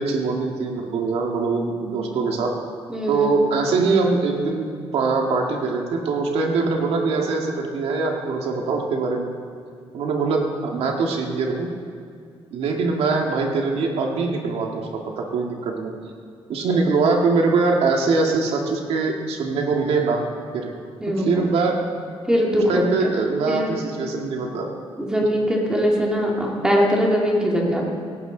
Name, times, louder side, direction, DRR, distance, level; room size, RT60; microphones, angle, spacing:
voice 1, 0.0-2.5 3.1-9.3 9.9-11.7 12.5-15.9 16.5-20.2 20.5-20.7 21.2-21.8 22.7-24.7 25.2-25.3, right 4 dB, 85° right, 1 dB, 2.0 m, -22 dB
voice 2, 2.9-3.4 21.0-21.4 22.3-22.8 23.5-23.8 25.0-27.8, equal, 5° right, -2 dB, 2.3 m, -21 dB
18.5 x 16.5 x 3.9 m, 2.2 s
wide cardioid pair, 175°, 10 cm